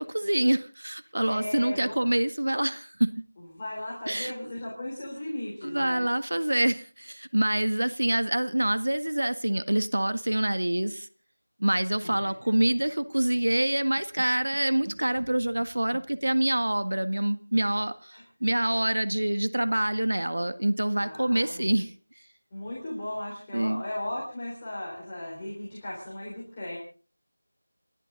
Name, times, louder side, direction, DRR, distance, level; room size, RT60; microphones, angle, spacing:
voice 1, 0.0-3.2 4.1-4.3 5.6-11.1 11.6-21.9 23.5-23.8, right 1 dB, 85° right, 12 dB, 1.6 m, -26 dB
voice 2, 1.3-2.1 3.5-6.1 12.0-12.3 18.1-18.2 21.0-21.8 22.5-26.8, left 1 dB, 15° left, -7 dB, 3.8 m, -36 dB
29.0 x 12.0 x 3.9 m, 0.38 s
figure-of-eight pair, 180°, 0 cm